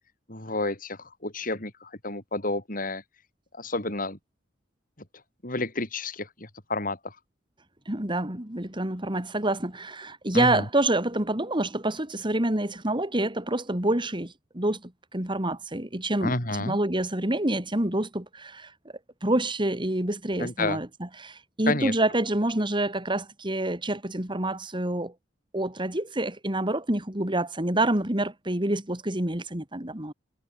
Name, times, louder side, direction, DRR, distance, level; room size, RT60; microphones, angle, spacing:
voice 1, 0.3-3.0 3.5-4.2 5.4-7.2 10.3-10.7 16.2-16.8 20.4-20.8 21.7-22.0, left 2 dB, 50° left, 8.0 m, -30 dB
voice 2, 7.8-16.3 16.6-18.7 19.2-25.1 25.5-30.1, right 1 dB, 25° right, 3.3 m, -27 dB
head